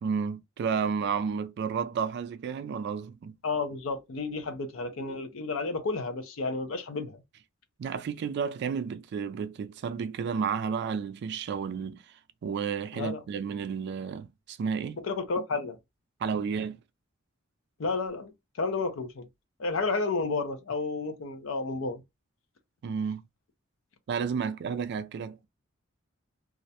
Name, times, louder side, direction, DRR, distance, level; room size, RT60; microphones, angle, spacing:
voice 1, 0.0-3.3 7.8-15.0 16.2-16.8 22.8-23.2 24.1-25.5, right 6 dB, 55° right, 0.3 m, -32 dB
voice 2, 3.4-7.2 12.9-13.2 15.0-15.8 17.8-18.3 18.6-19.3 19.6-22.0, left 3 dB, 75° left, 0.6 m, -31 dB
2.4 x 2.1 x 2.7 m
head